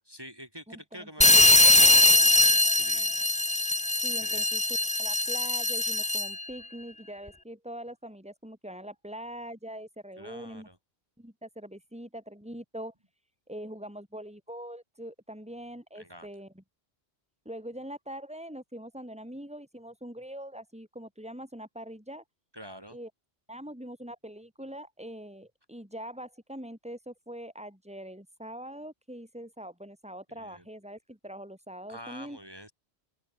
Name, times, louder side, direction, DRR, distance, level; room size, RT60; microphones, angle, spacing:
voice 1, 0.0-3.3 4.2-4.5 10.2-10.8 15.9-16.3 22.5-23.0 30.3-30.6 31.9-32.7, equal, 20° right, 5.1 m, -45 dB
voice 2, 0.7-1.4 4.0-4.6 5.0-10.7 11.2-12.9 13.5-16.6 17.4-22.2 22.9-23.1 23.5-32.4, right 1 dB, 5° right, 5.9 m, -43 dB
sound 1, 1.2-6.4, left 2 dB, 10° left, 0.3 m, -21 dB
omnidirectional pair, 1.1 m